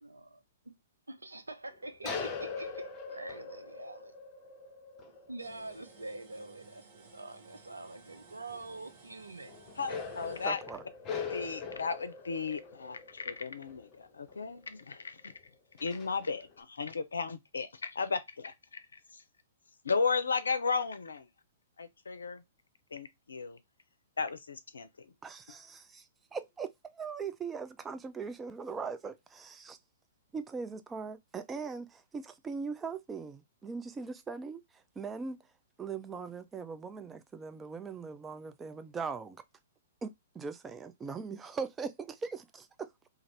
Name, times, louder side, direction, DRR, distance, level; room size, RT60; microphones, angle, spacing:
voice 1, 0.0-0.8 1.1-4.1 5.3-9.6, right 2 dB, 90° right, 0.6 m, -45 dB
sound 1, 1.8-6.7 7.1-7.2 7.3-7.5 8.5-8.8 9.5-14.6 15.3-15.4 15.8-16.5, left 5 dB, 25° left, 0.7 m, -42 dB
sound 2, 5.4-10.5, right 5 dB, 55° right, 0.9 m, -57 dB
voice 2, 9.8-10.6 11.3-15.3 15.8-19.2 19.8-21.3 21.8-22.4 22.9-23.6 24.2-25.1, left 5 dB, 80° left, 0.5 m, -35 dB
voice 3, 10.4-10.8 25.2-29.8 30.3-39.4 40.0-43.1, right 5 dB, 15° right, 0.4 m, -40 dB
2.5 x 2.4 x 3.2 m
figure-of-eight pair, 115°, 0 cm